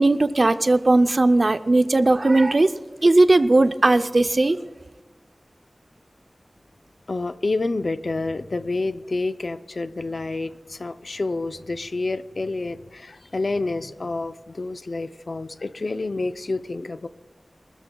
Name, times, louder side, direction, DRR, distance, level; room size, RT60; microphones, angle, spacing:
voice 1, 0.0-4.6, right 2 dB, 55° right, 10 dB, 0.5 m, -18 dB
voice 2, 7.1-17.1, left 3 dB, 65° left, 11 dB, 0.5 m, -28 dB
25.0 x 13.0 x 2.3 m, 1.3 s
wide cardioid pair, 65°, 0 cm